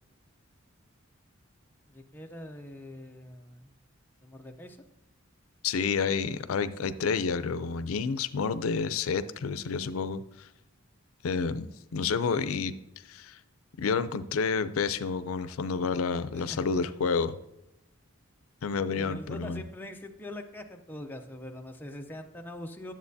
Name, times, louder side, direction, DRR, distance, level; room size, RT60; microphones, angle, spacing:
voice 1, 1.9-3.7 4.2-4.8 16.3-16.6 18.9-22.9, left 1 dB, 10° left, 3 dB, 0.6 m, -43 dB
voice 2, 5.6-10.5 11.2-12.7 13.1-13.4 13.8-17.4 18.6-19.6, left 5 dB, 90° left, 13 dB, 0.4 m, -29 dB
10.5 x 7.4 x 2.7 m, 0.91 s
head